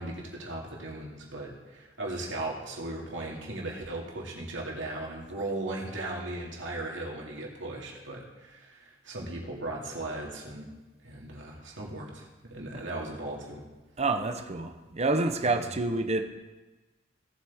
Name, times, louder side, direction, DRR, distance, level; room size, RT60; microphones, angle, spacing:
voice 1, 0.0-10.7 11.0-13.7 15.4-15.7, right 2 dB, 80° right, -2 dB, 2.3 m, -37 dB
voice 2, 14.0-16.2, right 2 dB, 35° right, 6 dB, 0.8 m, -28 dB
17.0 x 8.0 x 3.6 m, 1.2 s
head